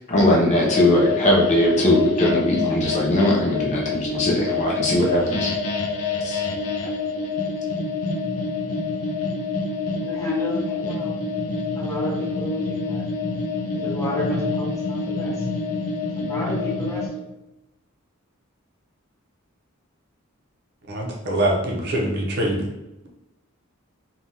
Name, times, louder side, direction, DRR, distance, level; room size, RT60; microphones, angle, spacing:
voice 1, 0.1-5.5 6.2-6.4, left 1 dB, 35° left, -2 dB, 0.5 m, -19 dB
sound 1, 0.6-17.1, left 4 dB, 90° left, 0.5 m, -27 dB
voice 2, 10.0-11.1 11.8-13.0 13.8-15.3 16.3-17.0, left 1 dB, 15° left, -7 dB, 1.1 m, -30 dB
voice 3, 20.9-22.7, right 1 dB, 50° right, -2 dB, 0.6 m, -23 dB
3.3 x 2.3 x 2.7 m, 0.98 s
head